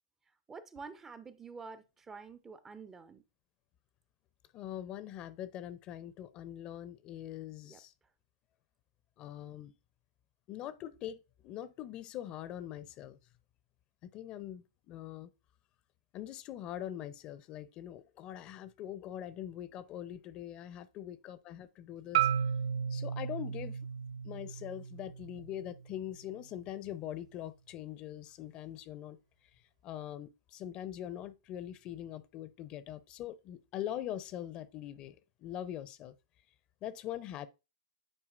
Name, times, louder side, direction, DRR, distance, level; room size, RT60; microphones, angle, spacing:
voice 1, 0.5-3.2 7.6-7.8, right 4 dB, 15° right, 0.5 m, -48 dB
voice 2, 4.5-7.9 9.2-9.7 10.5-13.2 14.1-15.3 16.1-22.3 22.9-23.8 24.2-29.2 29.8-36.1 36.8-37.5, left 11 dB, 35° left, 0.5 m, -43 dB
Marimba xylophone, 22.1-26.3, right 8 dB, 65° right, 0.6 m, -35 dB
8.8 x 4.5 x 2.5 m
hypercardioid pair, 125°, 3 cm